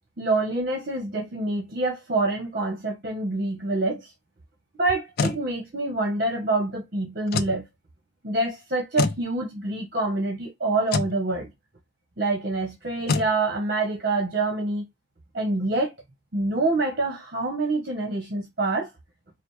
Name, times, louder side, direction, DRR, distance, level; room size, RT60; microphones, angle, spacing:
voice 1, 0.2-4.1 4.8-7.7 8.2-11.5 12.2-14.9 15.3-15.9 16.3-18.9, right 2 dB, 55° right, 1.1 m, -26 dB
sound 1, 4.9-5.4 7.3-7.6 9.0-9.2 10.9-11.2 13.1-13.3, left 4 dB, 55° left, 0.5 m, -25 dB
4.9 x 2.2 x 3.2 m
head